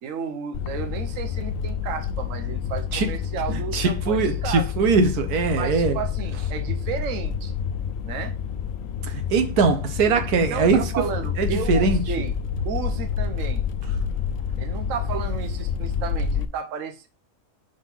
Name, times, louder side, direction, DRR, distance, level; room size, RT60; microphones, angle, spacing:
voice 1, 0.0-4.7 5.6-7.5 8.0-8.4 10.3-12.4 12.6-13.6 14.6-17.1, right 7 dB, 60° right, 1.2 m, -32 dB
sound 1, 0.5-16.4, left 7 dB, 70° left, 0.9 m, -28 dB
voice 2, 3.5-6.0 9.1-10.9 11.4-12.0, right 4 dB, 85° right, 1.3 m, -21 dB
5.2 x 3.9 x 5.5 m
omnidirectional pair, 1.6 m